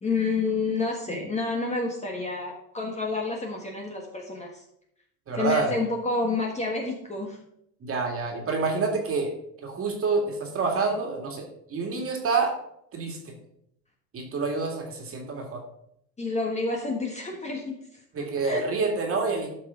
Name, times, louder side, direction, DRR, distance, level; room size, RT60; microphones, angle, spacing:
voice 1, 0.0-4.6 5.4-7.4 16.2-18.0 18.4-18.6, left 3 dB, 15° left, 0 dB, 1.3 m, -29 dB
voice 2, 5.3-5.8 7.8-9.3 9.6-12.5 12.9-13.3 14.1-15.6 18.1-19.5, right 4 dB, 30° right, 2 dB, 2.2 m, -27 dB
12.5 x 5.8 x 3.7 m, 0.76 s
supercardioid pair, 120°, 47 cm